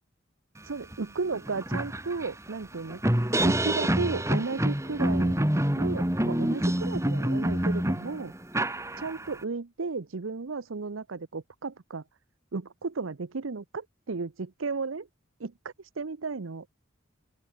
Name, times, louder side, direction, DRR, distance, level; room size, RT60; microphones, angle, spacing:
voice 1, 0.6-3.0 3.4-5.4 5.7-8.3 9.0-12.0 12.5-15.1 15.4-16.7, right 4 dB, 80° right, 0.8 m, -34 dB
sound 1, 0.9-1.0 1.3-9.4, right 1 dB, 15° right, 1.8 m, -27 dB
open air
head